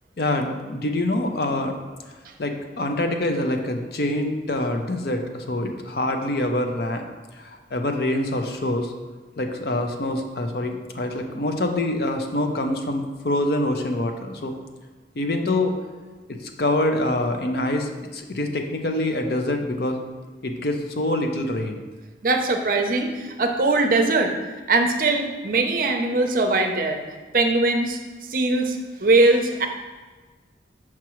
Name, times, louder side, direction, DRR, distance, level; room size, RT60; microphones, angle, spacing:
voice 1, 0.2-1.7 2.4-7.0 7.4-8.9 9.4-14.5 15.2-15.8 16.6-20.0 20.4-21.8, left 1 dB, 60° left, 4 dB, 0.6 m, -25 dB
voice 2, 22.2-24.3 24.7-27.0 27.3-28.0 28.3-29.7, right 2 dB, 50° right, 4 dB, 0.6 m, -21 dB
5.9 x 5.9 x 3.0 m, 1.3 s
head